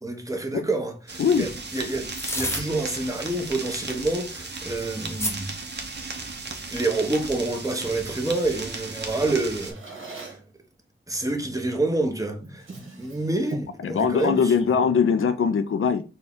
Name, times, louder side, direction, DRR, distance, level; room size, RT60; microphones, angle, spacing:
voice 1, 0.0-5.5 6.7-9.8 10.1-10.4 11.1-12.7 13.0-14.5, right 2 dB, 15° right, 0.8 m, -28 dB
sound 1, 1.1-9.7, right 3 dB, 55° right, 0.8 m, -36 dB
sound 2, 1.7-2.6 3.0-3.2 3.5-5.3 6.2-6.6, left 1 dB, 10° left, 0.9 m, -32 dB
Drawer open or close, 9.3-10.5 11.7-11.9 12.4-13.8, right 2 dB, 70° right, 1.3 m, -39 dB
voice 2, 13.8-16.0, left 6 dB, 85° left, 0.5 m, -21 dB
4.2 x 2.3 x 3.6 m
wide cardioid pair, 85°, 21 cm